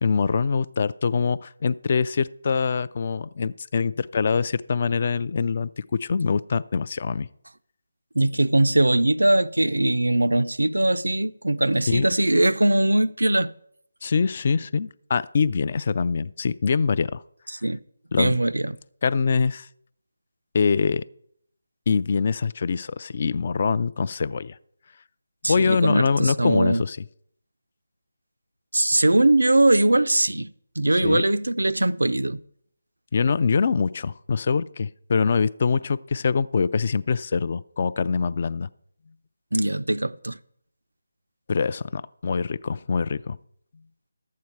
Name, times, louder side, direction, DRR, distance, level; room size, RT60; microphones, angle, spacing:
voice 1, 0.0-7.3 11.9-12.0 14.0-17.2 18.1-18.4 19.0-19.7 20.5-21.0 21.9-24.6 25.4-27.0 31.0-31.4 33.1-38.7 41.5-43.4, left 5 dB, 40° left, 0.3 m, -24 dB
voice 2, 8.1-13.5 17.6-17.8 18.2-18.7 25.4-26.8 28.7-32.4 39.5-40.4, right 1 dB, 85° right, 0.5 m, -21 dB
11.5 x 8.4 x 4.6 m
figure-of-eight pair, 160°, 0 cm